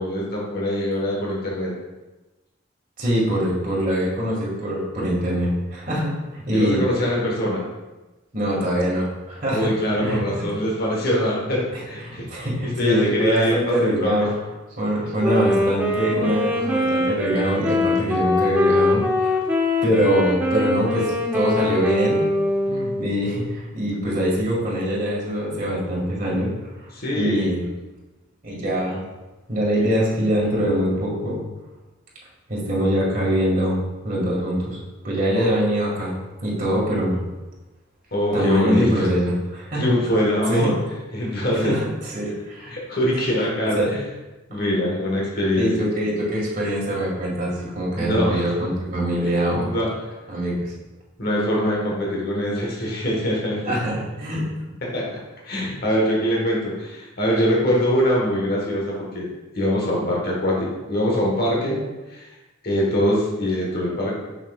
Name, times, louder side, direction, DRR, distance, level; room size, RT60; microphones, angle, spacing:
voice 1, 0.0-1.7 6.5-7.6 9.5-14.2 26.9-27.5 29.8-29.9 35.3-35.5 38.1-39.1 39.7-40.8 41.1-41.8 42.7-44.0 44.5-45.9 47.9-48.5 49.6-49.9 51.2-53.8 54.9-55.2 55.5-59.3 59.5-62.3 62.6-64.2, equal, 50° left, -3 dB, 1.3 m, -23 dB
voice 2, 3.0-6.8 8.3-9.7 10.0-10.5 11.7-14.3 14.8-19.4 19.8-22.2 22.7-26.5 27.1-27.6 28.4-29.0 29.5-31.4 32.5-34.8 35.0-36.1 36.4-37.2 38.3-39.9 40.5-40.7 41.6-42.7 43.8-43.9 45.6-49.7 50.3-50.6 53.6-54.4, equal, 40° right, -5 dB, 1.8 m, -23 dB
Wind instrument woodwind instrument, 15.2-23.2, left 1 dB, 5° right, 0.7 m, -22 dB
6.7 x 5.9 x 2.4 m, 1.1 s
head